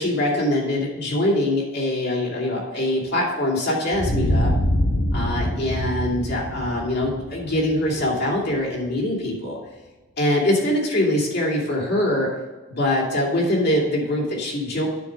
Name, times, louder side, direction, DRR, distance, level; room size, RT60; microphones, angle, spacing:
voice 1, 0.0-4.5 5.1-9.6 10.2-12.3 12.7-14.9, left 1 dB, 55° left, -2 dB, 2.7 m, -23 dB
sound 1, 3.9-8.5, equal, 85° left, 2.0 m, -24 dB
9.7 x 4.7 x 5.0 m, 1.2 s
head